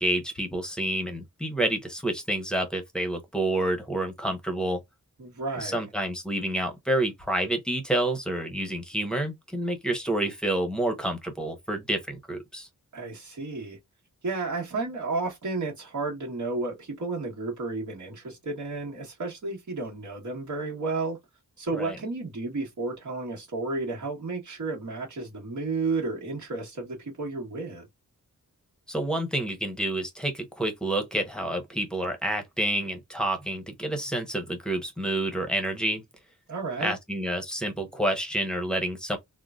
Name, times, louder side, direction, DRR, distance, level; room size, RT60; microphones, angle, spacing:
voice 1, 0.0-4.8 5.6-12.7 21.7-22.0 28.9-36.0 36.8-39.2, right 1 dB, ahead, 0.9 m, -29 dB
voice 2, 5.2-5.8 12.9-13.8 14.2-21.2 21.6-27.8 36.5-37.0, right 3 dB, 60° right, 1.3 m, -32 dB
3.7 x 2.2 x 2.4 m
wide cardioid pair, 125°, 33 cm